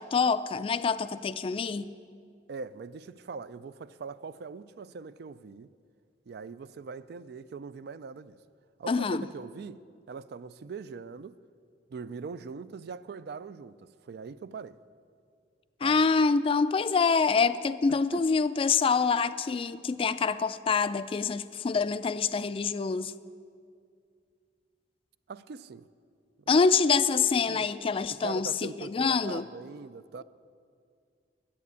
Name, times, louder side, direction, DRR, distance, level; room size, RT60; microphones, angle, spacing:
voice 1, 0.0-1.9 8.9-9.3 15.8-23.1 26.5-29.5, left 5 dB, 30° left, 0.3 m, -26 dB
voice 2, 2.5-5.7 6.3-8.4 8.8-9.8 10.1-11.4 11.9-14.8 15.8-16.0 18.1-18.2 25.3-25.9 27.5-27.7 28.2-30.2, right 5 dB, 60° right, 0.3 m, -41 dB
11.0 x 8.4 x 8.2 m
head